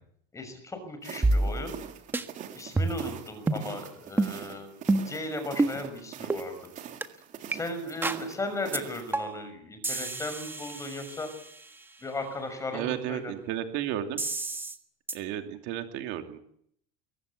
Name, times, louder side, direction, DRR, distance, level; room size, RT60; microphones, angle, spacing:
voice 1, 0.3-1.8 2.5-4.7 5.1-6.6 7.5-11.3 12.0-13.3, left 2 dB, 15° left, 8 dB, 6.1 m, -36 dB
sound 1, 1.0-9.1, right 9 dB, 40° right, 3.2 m, -44 dB
sound 2, 1.2-1.9 2.1-2.2 2.8-3.1 3.5-3.7 4.2-4.3 4.9-5.2 5.6-5.8 6.3-6.4 7.0-7.1 7.5-7.6 8.0-8.2 8.7-8.8 9.1-9.5 9.8-11.7 14.2-14.8 15.1-15.2, right 2 dB, 10° right, 1.5 m, -28 dB
voice 2, 12.7-14.2 15.1-16.4, right 11 dB, 60° right, 6 dB, 2.8 m, -33 dB
23.0 x 18.5 x 8.4 m, 0.68 s
cardioid pair, 140°, 20 cm